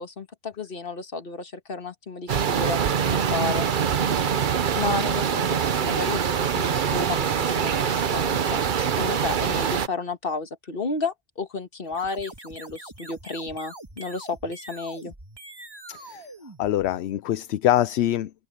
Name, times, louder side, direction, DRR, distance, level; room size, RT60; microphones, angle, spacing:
voice 1, 0.0-3.7 4.8-15.1, left 4 dB, 60° left, 1.8 m, -32 dB
sound 1, 2.3-9.9, right 7 dB, 55° right, 0.9 m, -24 dB
sound 2, 11.8-17.3, right 2 dB, 20° right, 1.8 m, -44 dB
voice 2, 15.9-16.3 16.6-18.3, left 12 dB, 80° left, 0.8 m, -24 dB
open air
omnidirectional pair, 1.1 m